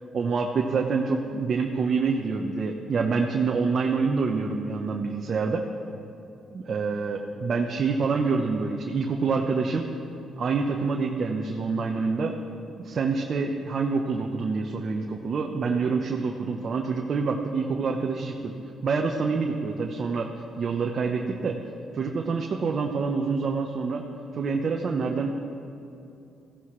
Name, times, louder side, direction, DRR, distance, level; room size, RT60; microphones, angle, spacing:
voice 1, 0.1-5.6 6.5-9.9 10.4-12.4 12.8-18.5 18.8-20.3 20.6-21.6 21.9-24.0 24.3-25.3, right 4 dB, 50° right, 1 dB, 1.0 m, -26 dB
17.5 x 15.0 x 3.2 m, 2.7 s
cardioid pair, 90°, 0 cm